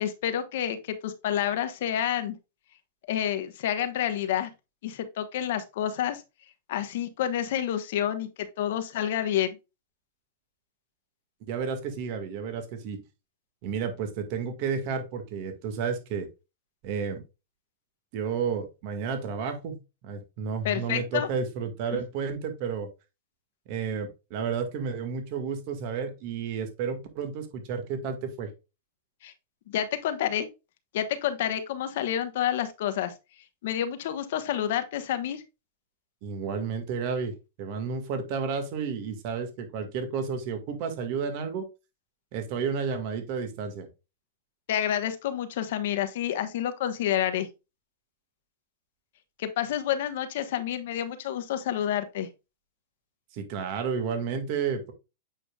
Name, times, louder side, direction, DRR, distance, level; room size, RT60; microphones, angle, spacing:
voice 1, 0.0-2.4 3.1-4.5 4.8-6.2 6.7-9.6 20.6-21.3 21.9-22.0 29.2-29.3 29.7-30.5 30.9-33.1 33.6-35.4 44.7-47.5 49.4-52.3, left 10 dB, 65° left, 1.3 m, -29 dB
voice 2, 11.5-13.0 13.6-16.3 16.8-17.2 18.1-19.8 20.0-22.9 23.7-28.5 36.2-37.3 37.6-41.6 42.3-43.9 53.3-54.9, right 6 dB, 50° right, 1.8 m, -31 dB
8.5 x 4.9 x 2.4 m
hypercardioid pair, 115°, 0 cm